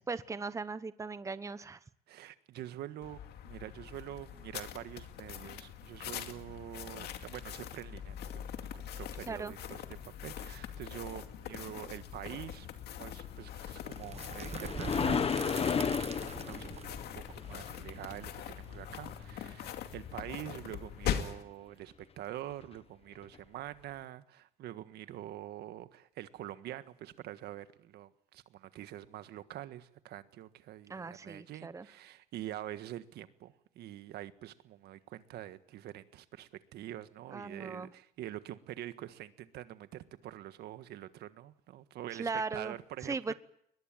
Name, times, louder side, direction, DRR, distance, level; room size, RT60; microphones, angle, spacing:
voice 1, 0.0-1.8 9.3-9.5 30.9-31.9 37.3-37.9 42.1-42.7 43.0-43.3, right 4 dB, 20° right, 14 dB, 1.0 m, -38 dB
voice 2, 2.1-43.3, right 13 dB, 75° right, 12 dB, 1.6 m, -46 dB
sound 1, 3.0-21.4, left 10 dB, 75° left, 2.4 m, -42 dB
sound 2, 13.5-18.7 22.6-22.7 23.3-23.4, left 6 dB, 35° left, 1.3 m, -34 dB
sound 3, 13.9-19.7, right 7 dB, 40° right, 1.2 m, -44 dB
22.0 x 20.5 x 9.0 m, 0.72 s
cardioid pair, 110°, 17 cm